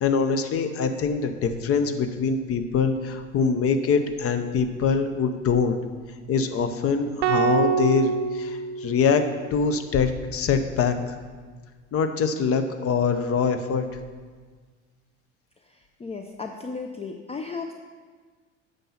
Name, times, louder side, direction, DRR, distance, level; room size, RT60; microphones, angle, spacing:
voice 1, 0.0-5.8 6.3-9.2 9.5-10.9 11.9-13.8, left 5 dB, 40° left, 9 dB, 0.8 m, -24 dB
sound 1, 7.2-9.5, right 7 dB, 65° right, 0.6 m, -25 dB
voice 2, 15.7-17.7, left 4 dB, 15° left, 4 dB, 0.5 m, -35 dB
9.0 x 5.5 x 5.7 m, 1.5 s
figure-of-eight pair, 65°, 37 cm